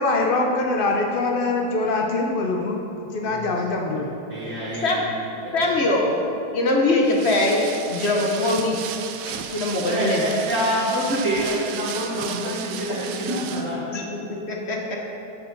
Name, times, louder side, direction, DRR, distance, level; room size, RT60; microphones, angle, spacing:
voice 1, 0.0-2.8 3.1-4.1, left 3 dB, 80° left, 1 dB, 0.4 m, -23 dB
voice 2, 4.3-5.1 5.4-5.6 9.9-13.8, right 1 dB, 45° right, -7 dB, 1.4 m, -26 dB
voice 3, 5.5-7.6 7.9-8.8 9.2-10.2 12.9-13.6 13.9-15.0, left 2 dB, 45° left, 0 dB, 1.0 m, -23 dB
sound 1, 7.1-13.8, right 8 dB, 75° right, 0.7 m, -34 dB
7.0 x 6.9 x 6.0 m, 2.9 s
omnidirectional pair, 2.0 m